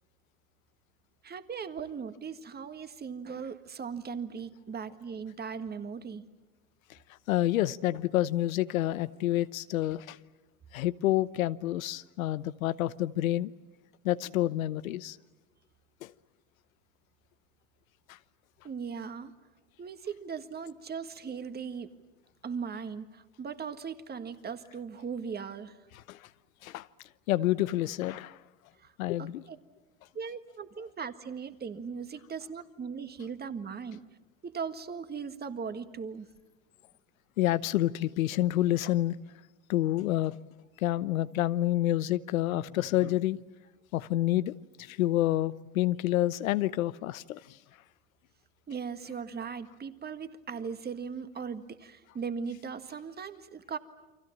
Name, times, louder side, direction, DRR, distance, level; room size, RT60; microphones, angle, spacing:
voice 1, 1.2-6.2 18.6-19.3 19.8-21.9 22.4-25.8 28.8-28.9 29.2-29.6 30.2-34.0 34.4-36.3 48.7-53.8, right 6 dB, 25° right, 10 dB, 1.8 m, -38 dB
voice 2, 7.3-10.2 10.7-13.5 14.0-15.2 16.0-16.1 25.9-26.2 26.6-26.9 27.3-28.4 29.0-29.4 37.4-39.2 39.7-40.4 40.8-43.4 43.9-47.6, left 14 dB, 85° left, 16 dB, 0.9 m, -28 dB
30.0 x 24.5 x 7.4 m, 1.1 s
hypercardioid pair, 100°, 40 cm